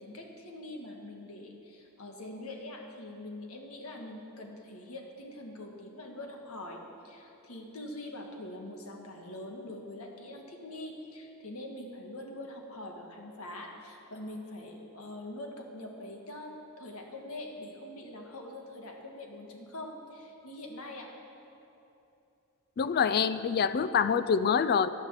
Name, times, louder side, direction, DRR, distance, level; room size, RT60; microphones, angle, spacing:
voice 1, 0.0-21.1, left 1 dB, 85° left, 2 dB, 1.6 m, -43 dB
voice 2, 22.8-24.9, left 6 dB, 45° left, 14 dB, 0.3 m, -26 dB
10.5 x 9.5 x 7.5 m, 2.8 s
head